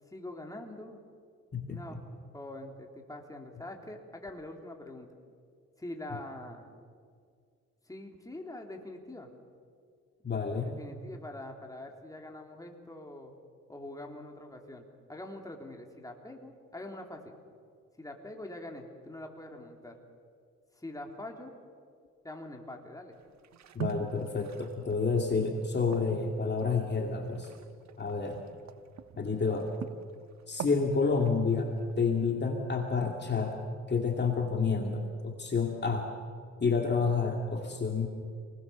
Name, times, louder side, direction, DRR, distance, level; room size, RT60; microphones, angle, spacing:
voice 1, 0.1-1.0 1.7-2.1 2.3-5.1 5.8-6.7 7.9-9.3 10.6-13.3 13.7-17.4 18.0-20.0 20.7-21.5 22.2-23.2, left 1 dB, 10° left, 2 dB, 3.5 m, -44 dB
voice 2, 10.2-10.8 23.7-27.5 28.0-28.4 29.2-29.7 30.5-33.6 33.9-36.1 36.6-38.1, left 4 dB, 35° left, 2 dB, 2.4 m, -29 dB
sound 1, 23.1-29.2 29.5-30.9 31.3-32.0, right 8 dB, 65° right, 1.4 m, -43 dB
28.5 x 20.5 x 7.0 m, 2.1 s
cardioid pair, 90°, 30 cm